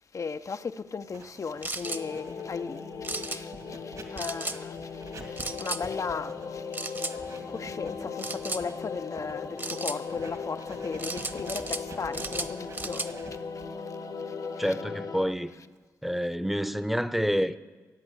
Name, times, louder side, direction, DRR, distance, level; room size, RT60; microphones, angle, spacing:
voice 1, 0.1-13.3 13.5-14.0 14.3-14.8, left 5 dB, 55° left, 0.6 m, -37 dB
Writing, 1.1-15.9, right 3 dB, 60° right, 2.1 m, -49 dB
sound 1, 1.6-2.0 3.0-3.4 4.2-4.6 5.4-5.8 6.7-7.1 8.2-8.6 9.6-10.0 11.0-11.8 12.1-13.1, right 2 dB, 30° right, 1.1 m, -34 dB
sound 2, 1.8-15.3, left 5 dB, 75° left, 1.4 m, -38 dB
voice 2, 14.6-15.5 16.0-17.6, equal, 5° right, 0.8 m, -28 dB
16.5 x 8.7 x 7.7 m
supercardioid pair, 45°, 7 cm